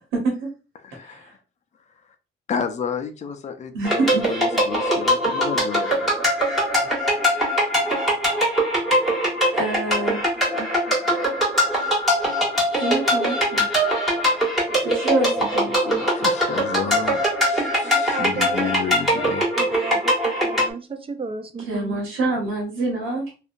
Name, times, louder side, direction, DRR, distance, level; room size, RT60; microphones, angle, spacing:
voice 1, 0.8-1.3 2.5-6.2 16.1-19.5, left 6 dB, 35° left, 0.4 m, -31 dB
voice 2, 3.7-4.2 9.5-10.2 12.8-13.7 14.8-16.0 21.6-23.2, right 2 dB, 75° right, 1.1 m, -25 dB
sound 1, 3.8-20.7, equal, ahead, 1.5 m, -22 dB
voice 3, 17.8-18.7 19.2-19.3 19.6-20.1 20.4-22.0, right 4 dB, 30° right, 0.4 m, -33 dB
2.7 x 2.3 x 2.5 m
cardioid pair, 90°, 20 cm